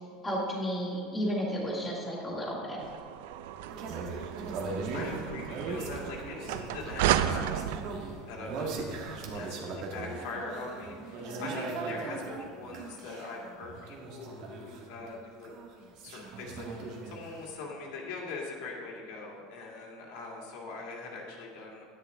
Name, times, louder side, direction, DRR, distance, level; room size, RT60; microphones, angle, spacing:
voice 1, 0.2-2.8, equal, 10° left, -6 dB, 1.9 m, -32 dB
sound 1, 2.8-9.4, right 11 dB, 75° right, 0.4 m, -34 dB
sound 2, 3.7-15.2 15.4-17.5, right 3 dB, 50° right, 1.4 m, -39 dB
voice 2, 4.9-7.9 8.2-9.0 9.3-15.5 16.0-21.9, left 3 dB, 70° left, -3 dB, 2.2 m, -42 dB
10.5 x 9.9 x 3.6 m, 2.4 s
cardioid pair, 165°, 0 cm